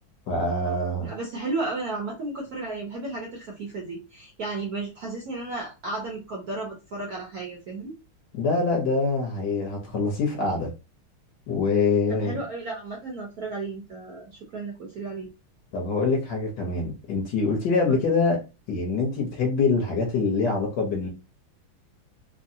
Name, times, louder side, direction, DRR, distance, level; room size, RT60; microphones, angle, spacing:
voice 1, 0.3-1.1 8.3-10.7 11.5-12.4 15.7-18.4 18.7-21.1, left 3 dB, 65° left, 1 dB, 1.2 m, -24 dB
voice 2, 1.0-7.9 12.1-15.3 17.9-18.0, right 3 dB, 65° right, -1 dB, 0.9 m, -33 dB
3.7 x 2.0 x 2.6 m, 0.29 s
omnidirectional pair, 2.4 m